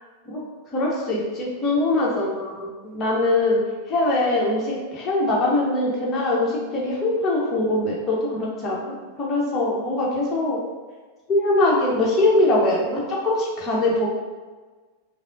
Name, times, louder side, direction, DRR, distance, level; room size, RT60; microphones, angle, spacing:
voice 1, 0.7-3.6 3.9-10.6 11.3-14.1, left 2 dB, 25° left, -4 dB, 0.9 m, -22 dB
5.1 x 2.0 x 2.6 m, 1.4 s
figure-of-eight pair, 90°, 0 cm